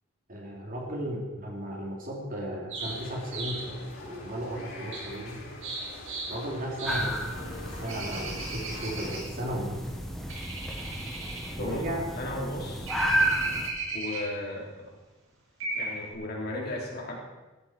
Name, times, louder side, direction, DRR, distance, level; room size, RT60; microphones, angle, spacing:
voice 1, 0.3-5.4 6.3-7.3 7.6-9.8 11.6-12.3, equal, 45° right, -1 dB, 3.2 m, -35 dB
sound 1, 2.7-3.7 4.9-5.1 5.6-6.4 6.8-7.1 7.9-9.3 10.3-11.6 12.9-14.5 15.6-16.1, right 3 dB, 70° right, 4.9 m, -36 dB
sound 2, 2.8-9.2, left 2 dB, 90° left, 6.0 m, -44 dB
sound 3, 6.8-13.7, right 1 dB, ahead, 1.7 m, -32 dB
voice 2, 12.1-12.9 13.9-14.9 15.7-17.2, left 1 dB, 50° left, -2 dB, 3.7 m, -35 dB
15.0 x 14.5 x 4.5 m, 1.1 s
head